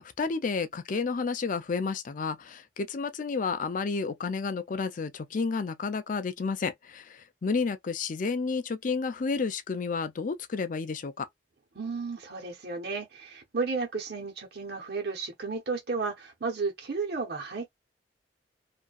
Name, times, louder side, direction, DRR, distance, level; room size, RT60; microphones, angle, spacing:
voice 1, 0.0-7.0 7.4-11.3, left 4 dB, 45° left, 0.4 m, -31 dB
voice 2, 11.7-17.7, right 4 dB, 60° right, 1.0 m, -33 dB
2.7 x 2.5 x 2.4 m
head